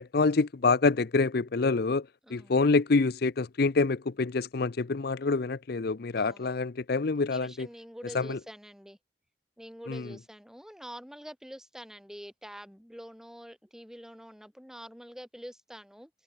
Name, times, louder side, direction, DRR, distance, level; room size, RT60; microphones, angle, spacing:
voice 1, 0.0-7.7 8.1-8.4 9.9-10.1, left 3 dB, 55° left, 0.6 m, -26 dB
voice 2, 2.2-2.6 6.2-6.7 7.3-9.0 9.6-16.1, equal, 5° right, 6.4 m, -46 dB
head